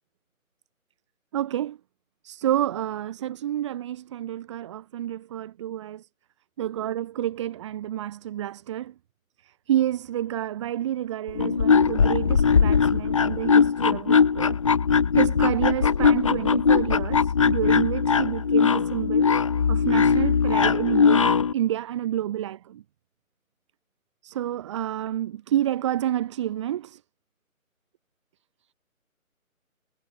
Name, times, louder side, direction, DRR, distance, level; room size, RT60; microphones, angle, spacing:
voice 1, 1.3-1.8 2.2-6.1 6.6-8.9 9.4-14.6 15.1-19.3 19.7-22.8 24.2-27.0, right 12 dB, 20° right, 3.9 m, -29 dB
sound 1, 11.3-21.5, left 6 dB, 20° left, 1.3 m, -20 dB
figure-of-eight pair, 155°, 42 cm